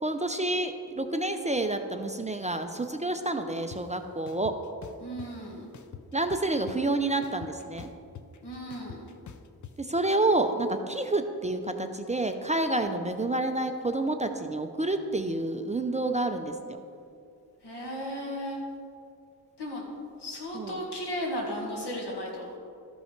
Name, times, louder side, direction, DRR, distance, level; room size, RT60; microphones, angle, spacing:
voice 1, 0.0-4.5 6.1-7.9 9.8-16.8 20.5-20.8, right 2 dB, 20° right, 6 dB, 0.4 m, -29 dB
sound 1, 3.7-3.8 4.3-5.3 5.7-6.9 7.2-9.7, left 7 dB, 50° left, 0.5 m, -45 dB
voice 2, 5.0-5.7 8.4-9.0 17.6-18.6 19.6-19.8 20.2-22.5, equal, 90° left, -2 dB, 2.0 m, -35 dB
13.0 x 5.5 x 4.4 m, 2.5 s
wide cardioid pair, 125°, 39 cm